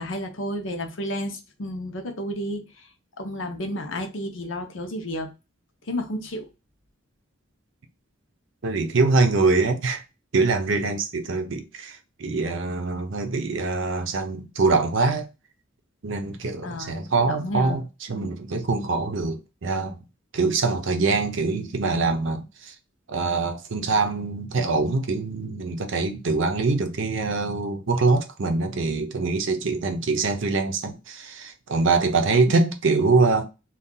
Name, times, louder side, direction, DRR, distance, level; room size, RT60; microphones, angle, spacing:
voice 1, 0.0-2.9 3.2-5.3 5.9-6.5 16.6-17.0 17.2-17.8 32.5-32.6, equal, 65° left, 0.7 m, -31 dB
voice 2, 8.6-10.0 10.3-15.3 16.0-17.8 18.1-20.0 20.3-22.7 23.1-33.4, right 3 dB, 65° right, 0.6 m, -24 dB
2.7 x 2.3 x 3.7 m
head